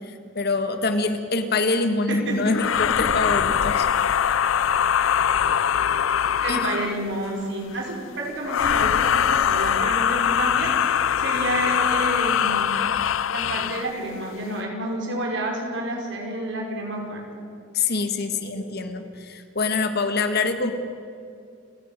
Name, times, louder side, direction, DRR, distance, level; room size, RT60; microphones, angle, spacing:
voice 1, 0.1-3.9 6.5-6.8 17.7-20.7, left 3 dB, 55° left, 8 dB, 1.7 m, -25 dB
voice 2, 2.1-2.5 6.4-12.7 13.3-17.2 18.6-18.7, right 1 dB, 65° right, 0 dB, 5.4 m, -29 dB
sound 1, 2.5-7.1 8.4-13.9, left 8 dB, 85° left, 0.5 m, -22 dB
29.5 x 11.0 x 9.1 m, 2.3 s
head